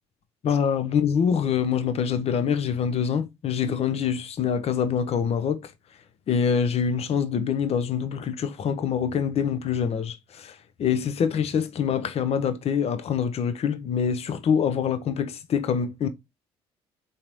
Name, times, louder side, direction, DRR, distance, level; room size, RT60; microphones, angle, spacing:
voice 1, 0.4-5.7 6.3-16.1, left 7 dB, 50° left, 0.7 m, -25 dB
3.9 x 2.8 x 3.1 m
hypercardioid pair, 60°, 13 cm